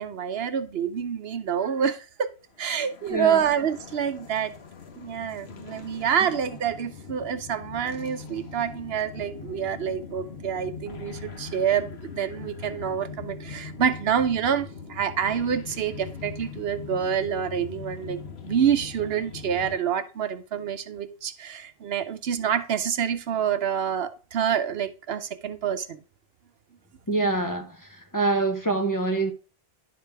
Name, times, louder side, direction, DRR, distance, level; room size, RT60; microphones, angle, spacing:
voice 1, 0.0-2.3 2.6-4.5 4.9-26.0, right 8 dB, 75° right, 0.9 m, -27 dB
sound 1, 2.6-19.8, left 5 dB, 85° left, 1.2 m, -41 dB
voice 2, 3.1-3.4 27.1-27.9 28.1-29.3, right 3 dB, 20° left, 0.9 m, -25 dB
11.0 x 4.9 x 3.4 m
omnidirectional pair, 1.0 m